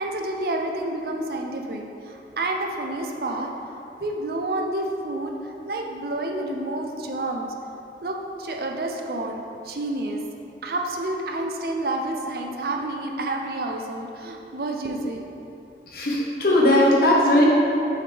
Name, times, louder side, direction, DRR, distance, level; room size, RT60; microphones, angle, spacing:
voice 1, 0.0-7.5 8.0-10.2 10.6-15.4, right 2 dB, 55° right, 2 dB, 0.5 m, -29 dB
voice 2, 15.9-17.5, left 1 dB, 55° left, -4 dB, 1.1 m, -18 dB
6.4 x 5.0 x 3.4 m, 3.0 s
head